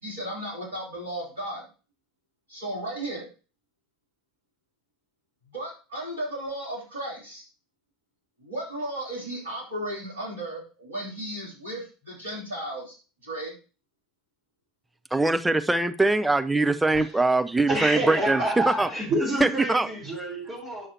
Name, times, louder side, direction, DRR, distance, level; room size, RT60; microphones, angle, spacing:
voice 1, 0.0-1.6 2.5-3.3 5.5-7.4 8.4-13.0 13.2-13.5, right 1 dB, 75° right, 3.6 m, -35 dB
voice 2, 15.1-18.9 19.4-19.9, right 2 dB, 10° right, 0.7 m, -22 dB
voice 3, 17.7-20.9, right 1 dB, 35° right, 4.3 m, -28 dB
10.0 x 6.5 x 2.9 m
figure-of-eight pair, 70°, 0 cm